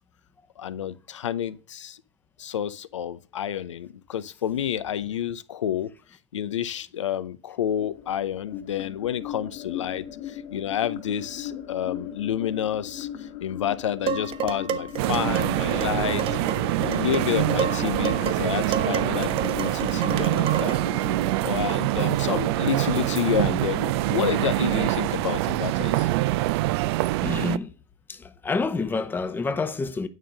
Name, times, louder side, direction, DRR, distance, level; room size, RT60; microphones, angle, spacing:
voice 1, 0.6-2.0 2.4-5.9 6.3-16.3 16.8-20.8 21.4-26.1, left 10 dB, 90° left, 0.6 m, -29 dB
sound 1, 7.7-22.7, left 10 dB, 50° left, 1.8 m, -37 dB
Dishes pots and pans, 14.1-20.9, right 8 dB, 35° right, 0.8 m, -31 dB
sound 2, 15.0-27.6, right 18 dB, 60° right, 0.4 m, -25 dB
voice 2, 27.2-27.7 28.1-28.2 28.4-30.1, left 4 dB, 15° left, 0.8 m, -27 dB
9.3 x 3.8 x 6.3 m
hypercardioid pair, 110°, 15 cm